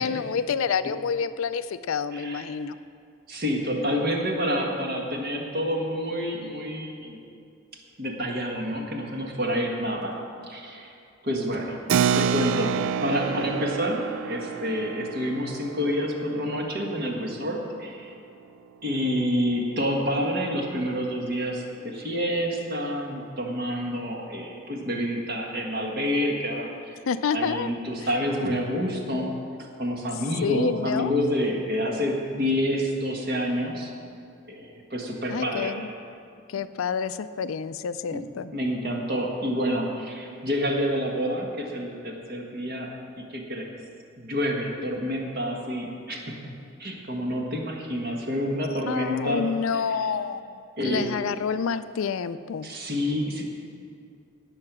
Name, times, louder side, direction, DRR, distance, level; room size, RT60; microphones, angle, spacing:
voice 1, 0.0-2.8 27.1-27.7 30.4-31.1 35.3-35.9 36.5-38.5 48.9-52.7, left 6 dB, 70° left, 13 dB, 0.4 m, -28 dB
voice 2, 2.1-2.4 3.3-7.2 8.0-10.9 11.2-11.8 12.0-18.1 18.8-27.0 27.3-29.4 29.8-33.9 34.5-35.7 38.1-38.2 38.5-42.9 43.3-43.7 44.2-46.5 46.8-49.5 50.8-51.1 52.6-53.4, equal, 45° right, 0 dB, 1.6 m, -28 dB
Keyboard (musical), 11.9-17.9, right 8 dB, 65° right, 0.3 m, -29 dB
17.5 x 6.6 x 6.1 m, 2.4 s
head